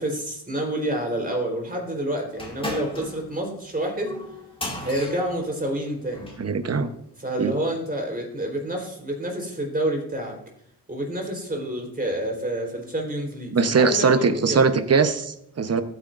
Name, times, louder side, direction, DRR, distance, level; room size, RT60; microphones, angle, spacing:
voice 1, 0.0-4.1 4.7-6.3 7.2-10.4 10.9-14.6, right 1 dB, 20° right, 1 dB, 4.0 m, -28 dB
sound 1, 2.3-6.5, left 1 dB, 15° left, 2.6 m, -36 dB
voice 2, 6.4-6.9 7.4-7.5 13.5-15.8, right 5 dB, 40° right, 10 dB, 1.0 m, -21 dB
15.0 x 9.6 x 2.6 m, 0.69 s
cardioid pair, 85°, 39 cm